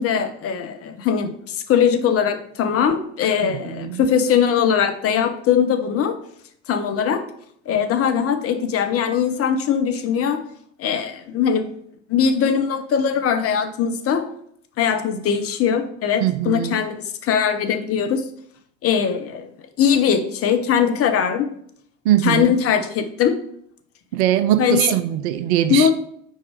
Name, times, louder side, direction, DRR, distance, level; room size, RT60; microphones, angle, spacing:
voice 1, 0.0-6.2 6.7-7.2 7.7-10.4 10.8-11.7 12.1-14.3 14.8-18.3 18.8-19.5 19.8-21.5 22.2-23.3 24.6-24.9 25.7-25.9, left 7 dB, 35° left, 0.8 m, -20 dB
voice 2, 3.4-4.0 16.2-16.8 22.0-22.5 24.1-25.9, right 12 dB, 60° right, 0.6 m, -21 dB
5.5 x 4.6 x 4.7 m
figure-of-eight pair, 65°, 39 cm